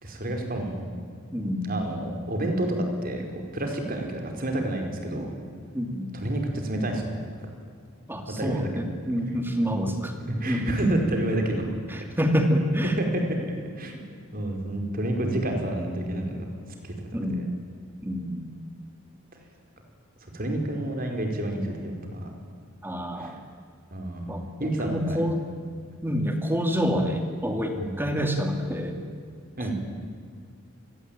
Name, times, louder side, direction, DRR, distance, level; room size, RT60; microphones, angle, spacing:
voice 1, 0.0-0.8 1.6-5.3 6.1-7.1 7.4-7.5 8.4-8.7 10.2-11.7 12.0-12.2 12.8-13.4 13.8-14.0 14.3-16.5 16.8-17.5 20.3-22.3 23.2-23.3 23.9-25.2 27.8-27.9 29.6-29.7, right 1 dB, 40° right, 3 dB, 5.1 m, -29 dB
voice 2, 1.3-1.6 5.7-6.1 8.1-10.1 10.5-10.9 11.9-13.0 17.1-17.5 18.0-18.4 22.8-23.4 24.3-25.4 26.0-29.0, equal, 10° right, 5 dB, 2.6 m, -27 dB
27.5 x 21.5 x 9.1 m, 2.2 s
head